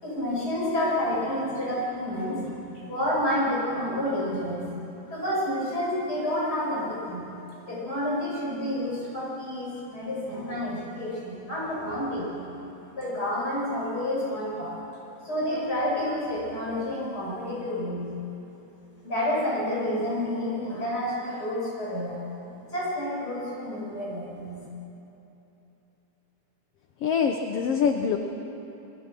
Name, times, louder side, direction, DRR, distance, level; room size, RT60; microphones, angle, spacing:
voice 1, 0.0-4.7 5.1-7.2 7.5-12.4 12.9-14.8 15.2-18.1 19.0-22.2 22.7-24.6, left 1 dB, 25° left, -6 dB, 8.1 m, -29 dB
voice 2, 27.0-28.2, left 6 dB, 65° left, 4 dB, 1.6 m, -24 dB
28.0 x 23.0 x 6.2 m, 3.0 s
omnidirectional pair, 3.7 m